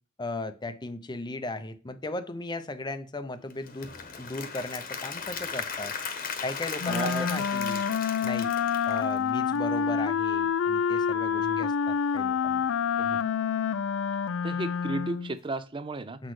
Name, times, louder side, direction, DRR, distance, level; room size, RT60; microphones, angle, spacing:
voice 1, 0.2-3.9 4.2-5.9 6.4-7.8 8.2-8.5 8.9-12.7 16.2-16.3, left 2 dB, 20° left, 10 dB, 0.6 m, -36 dB
Applause / Crowd, 3.5-9.6, left 5 dB, 45° left, 1.1 m, -36 dB
Wind instrument woodwind instrument, 6.8-15.3, left 7 dB, 80° left, 0.4 m, -27 dB
voice 2, 6.9-7.3 11.3-11.6 13.0-13.2 14.4-16.2, right 2 dB, 25° right, 13 dB, 0.5 m, -34 dB
7.4 x 6.2 x 3.2 m, 0.38 s
head